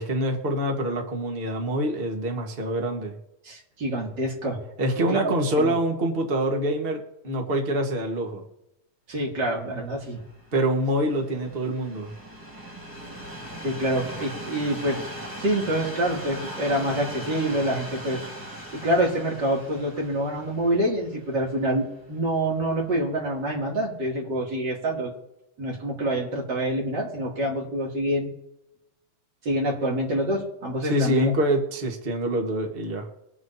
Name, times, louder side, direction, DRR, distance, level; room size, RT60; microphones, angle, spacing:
voice 1, 0.0-3.1 4.8-7.0 7.2-8.4 10.5-12.1 30.8-33.1, right 1 dB, 60° right, 2 dB, 0.5 m, -25 dB
voice 2, 3.4-4.6 5.1-5.2 5.6-5.7 9.1-10.2 13.6-15.0 15.4-18.2 18.8-25.1 25.6-28.3 29.4-31.3, right 1 dB, 35° right, -3 dB, 2.9 m, -26 dB
Train, 9.7-22.9 23.6-23.7, equal, 10° right, 1.2 m, -40 dB
23.0 x 7.8 x 2.7 m, 0.88 s
omnidirectional pair, 3.3 m